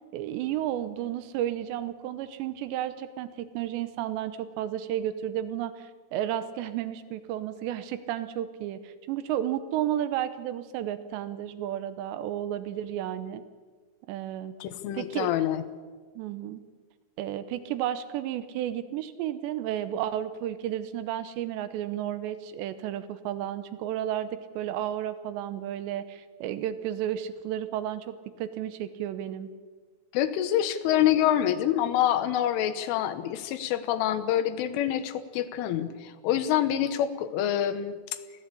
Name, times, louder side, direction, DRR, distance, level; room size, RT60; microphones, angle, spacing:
voice 1, 0.1-13.4 14.1-14.6 14.9-15.3 16.2-16.6 17.2-29.5, right 11 dB, 80° right, 13 dB, 2.8 m, -32 dB
voice 2, 14.6-15.6 30.1-38.0, left 11 dB, 85° left, 11 dB, 3.5 m, -26 dB
22.0 x 16.0 x 8.5 m, 1.5 s
omnidirectional pair, 5.6 m